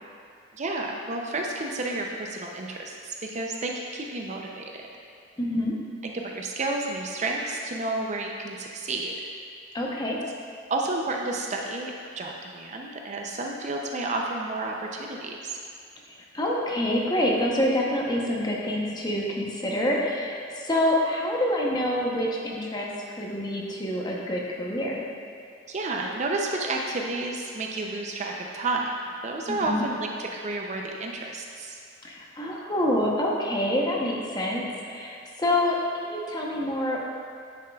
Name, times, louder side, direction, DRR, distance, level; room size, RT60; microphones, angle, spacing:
voice 1, 0.5-4.9 6.0-9.1 10.7-15.6 25.7-28.9 29.2-31.8, right 2 dB, 35° right, 0 dB, 0.5 m, -31 dB
voice 2, 5.4-5.7 9.7-10.2 16.3-22.9 23.2-25.0 29.5-29.8 32.0-37.0, left 1 dB, 20° left, -2 dB, 0.8 m, -27 dB
10.5 x 6.5 x 2.3 m, 2.3 s
head